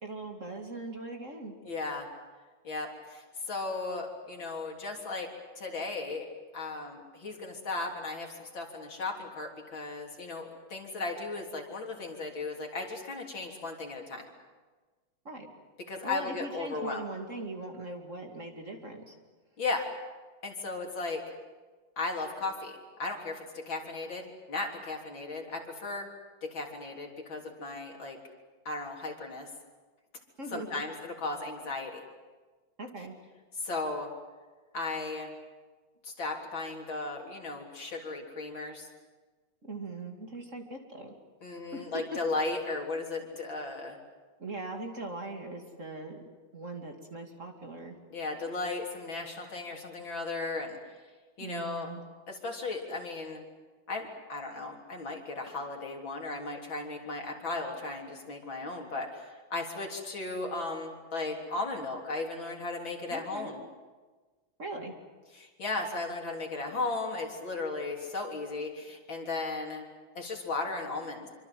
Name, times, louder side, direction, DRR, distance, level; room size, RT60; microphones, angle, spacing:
voice 1, 0.0-1.5 15.2-15.5 16.0-19.1 30.4-30.8 32.8-33.2 39.6-41.1 41.4-42.0 44.4-46.2 46.5-47.9 51.4-52.0 63.1-63.5 64.6-64.9, right 2 dB, 35° right, 3 dB, 2.8 m, -40 dB
voice 2, 1.6-2.1 2.6-5.3 5.6-6.3 6.5-14.3 15.9-17.0 19.6-19.8 20.4-21.2 22.0-22.7 23.0-26.1 26.4-28.2 28.7-29.5 30.5-32.0 33.6-34.1 34.7-35.3 36.0-38.9 41.4-44.0 48.1-50.8 51.4-51.9 52.3-53.4 53.9-63.6 65.3-69.8 70.2-71.3, left 3 dB, 65° left, 1 dB, 4.2 m, -36 dB
26.5 x 25.0 x 7.7 m, 1.3 s
omnidirectional pair, 2.3 m